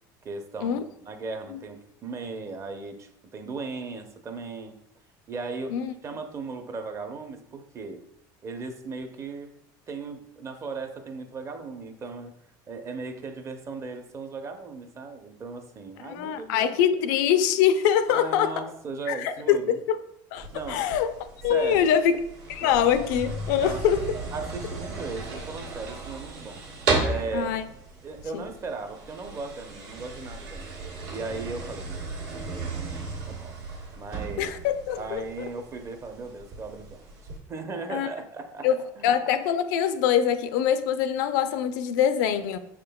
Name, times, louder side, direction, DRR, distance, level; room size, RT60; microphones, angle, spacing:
voice 1, 0.2-4.8 5.3-8.0 8.4-9.5 9.9-12.3 12.7-16.8 18.1-19.8 20.5-20.9 21.5-21.9 23.5-23.8 24.3-26.6 27.0-27.6 28.0-30.8 31.1-32.0 32.3-33.5 34.0-34.5 35.0-37.0 37.5-38.7 39.0-39.1, right 4 dB, 30° right, 7 dB, 0.6 m, -37 dB
voice 2, 16.0-18.5 19.1-20.0 20.3-21.1 21.4-22.2 22.5-24.0 27.3-27.6 28.3-28.4 34.4-35.2 37.9-38.1 38.6-38.7 39.0-42.6, left 9 dB, 80° left, 11 dB, 0.4 m, -24 dB
sound 1, 20.4-37.4, right 3 dB, 75° right, 1.5 m, -35 dB
6.2 x 3.7 x 2.2 m, 0.76 s
supercardioid pair, 125°, 10 cm